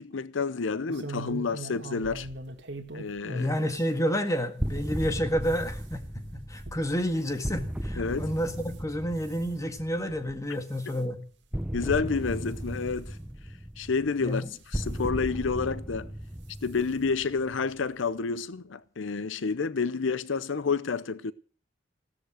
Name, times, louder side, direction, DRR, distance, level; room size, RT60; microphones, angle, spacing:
voice 1, 0.0-2.3 2.9-3.5 8.0-8.3 11.7-13.2 13.8-16.1 16.6-21.3, left 4 dB, 85° left, 0.7 m, -29 dB
sound 1, 0.9-4.2 4.7-8.8 9.2-9.5 10.1-10.4 10.7-11.0 11.6-11.7 12.1-12.2 13.3-13.4 14.2-15.0 16.1-16.3 16.7-16.8 17.1-17.2, right 2 dB, 65° right, 2.1 m, -43 dB
voice 2, 3.3-6.0 6.3-11.2 14.2-14.5, equal, 15° left, 1.8 m, -29 dB
sound 2, 4.6-10.3 11.5-17.8, equal, 5° right, 0.6 m, -36 dB
15.5 x 13.5 x 6.4 m
head